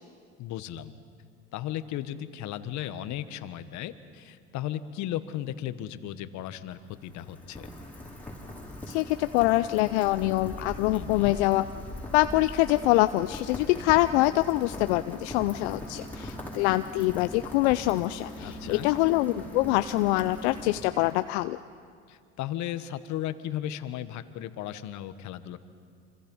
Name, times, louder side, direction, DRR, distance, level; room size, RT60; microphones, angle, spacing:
voice 1, 0.4-0.9 1.5-7.7 10.9-11.4 18.4-18.9 22.1-25.6, left 12 dB, 60° left, 12 dB, 1.3 m, -35 dB
Rain, 6.7-21.4, equal, 5° left, 5.1 m, -41 dB
voice 2, 8.9-11.7 12.1-21.6, left 18 dB, 80° left, 11 dB, 0.6 m, -25 dB
26.5 x 25.5 x 5.5 m, 2.2 s
supercardioid pair, 90°, 32 cm